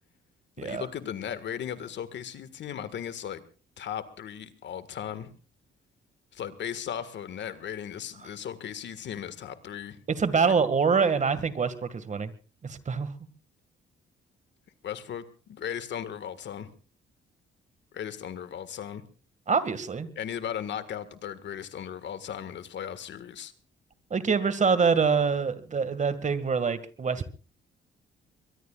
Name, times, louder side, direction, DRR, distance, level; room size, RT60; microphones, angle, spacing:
voice 1, 0.6-3.4 3.8-5.3 6.3-10.0 10.4-10.5 14.8-16.7 17.9-19.0 20.1-23.5, left 9 dB, 65° left, 12 dB, 1.8 m, -37 dB
voice 2, 10.1-12.3 12.6-13.1 19.5-20.1 24.1-27.3, right 5 dB, 40° right, 13 dB, 2.0 m, -25 dB
23.0 x 22.0 x 2.4 m, 0.36 s
cardioid pair, 90°, 20 cm